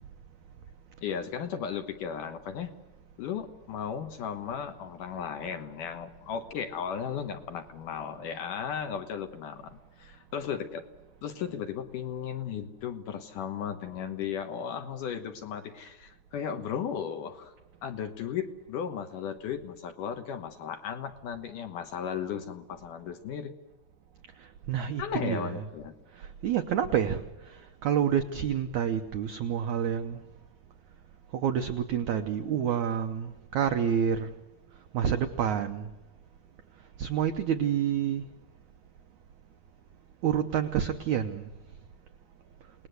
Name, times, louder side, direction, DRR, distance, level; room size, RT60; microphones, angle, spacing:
voice 1, 1.0-2.7 3.2-10.8 11.2-17.5 17.8-23.5 25.0-25.9, left 8 dB, 65° left, 7 dB, 2.4 m, -35 dB
voice 2, 24.4-25.7 26.1-30.2 31.3-34.3 34.9-35.9 37.0-38.2 40.2-41.5, right 9 dB, 85° right, 7 dB, 1.6 m, -28 dB
29.0 x 19.5 x 8.0 m, 1.1 s
omnidirectional pair, 4.8 m